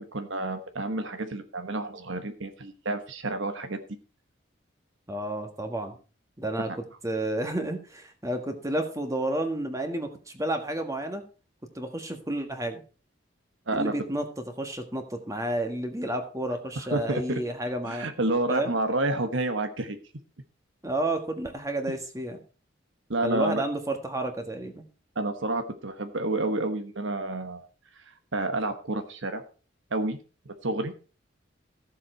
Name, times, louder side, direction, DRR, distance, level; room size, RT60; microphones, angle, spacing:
voice 1, 0.0-3.8 13.7-13.9 16.9-17.4 17.9-20.0 23.1-23.6 25.1-27.6 28.1-29.4 29.9-30.2 30.5-30.9, right 2 dB, 80° right, 7 dB, 1.2 m, -29 dB
voice 2, 5.1-6.0 6.4-11.2 11.7-12.8 13.7-18.1 18.5-18.7 20.8-22.4 23.2-24.8, right 1 dB, 15° right, 5 dB, 1.6 m, -31 dB
14.0 x 7.6 x 4.4 m, 0.36 s
head